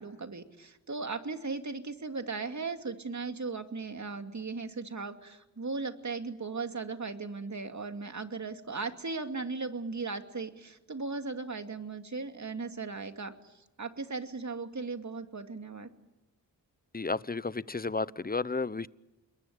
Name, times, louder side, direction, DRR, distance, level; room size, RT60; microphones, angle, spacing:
voice 1, 0.0-15.9, right 4 dB, 45° right, 7 dB, 2.6 m, -37 dB
voice 2, 16.9-18.9, left 3 dB, 20° left, 18 dB, 0.9 m, -32 dB
29.0 x 21.5 x 8.8 m, 0.98 s
cardioid pair, 40°, 40 cm